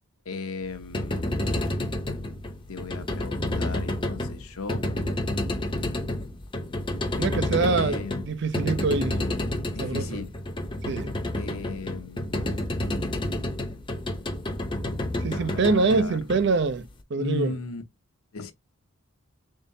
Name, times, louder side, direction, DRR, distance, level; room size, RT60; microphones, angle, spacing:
voice 1, 0.2-1.4 2.7-4.9 7.6-8.2 9.7-10.4 11.4-12.4 15.3-16.2 17.2-17.8 18.3-18.5, left 3 dB, 85° left, 0.8 m, -36 dB
sound 1, 0.7-16.9, left 1 dB, 20° left, 0.6 m, -30 dB
voice 2, 7.2-8.0 8.3-9.2 9.8-10.2 10.9-11.1 15.2-17.6, right 4 dB, 55° right, 0.5 m, -25 dB
3.7 x 3.7 x 2.7 m
head